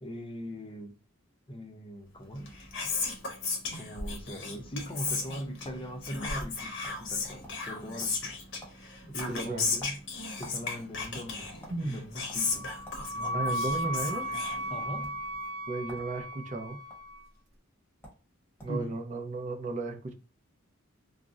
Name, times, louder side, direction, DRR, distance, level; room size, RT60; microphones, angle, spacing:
voice 1, 0.0-0.9 1.5-2.6 3.7-8.3 9.1-10.0 10.4-13.6 14.7-15.2 18.6-19.0, equal, 25° left, 0.5 m, -41 dB
Whispering, 2.3-15.1, left 4 dB, 65° left, 0.7 m, -36 dB
sound 1, 5.1-5.9 6.2-6.4 6.8-7.0 7.3-7.8 8.0-8.3 8.6-8.8 9.2-10.6 10.9-11.8 12.3-12.4 12.8-13.0 13.4-14.2 14.9-15.1 15.8-16.1 16.4-17.0 17.7-17.8 18.0-18.2 18.6-18.8, equal, 10° left, 0.9 m, -49 dB
voice 2, 9.0-9.7 11.7-12.0 13.3-14.3 15.7-16.8 18.6-20.1, right 2 dB, 35° right, 0.5 m, -34 dB
Wind instrument woodwind instrument, 12.5-17.2, equal, 65° right, 0.9 m, -35 dB
2.5 x 2.0 x 3.4 m
head